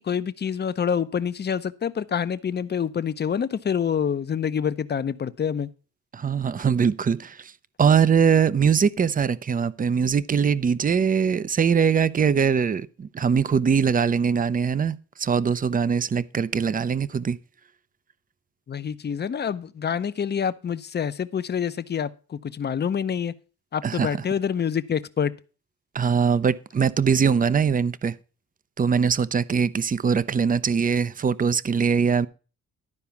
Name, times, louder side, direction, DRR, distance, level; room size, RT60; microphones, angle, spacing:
voice 1, 0.0-5.7 18.7-23.3 23.7-25.3, left 7 dB, 35° left, 0.7 m, -27 dB
voice 2, 6.1-7.5 7.8-17.4 23.8-24.2 25.9-28.1 28.8-32.3, right 6 dB, 30° right, 0.6 m, -22 dB
12.0 x 4.8 x 7.0 m
cardioid pair, 90°, 30 cm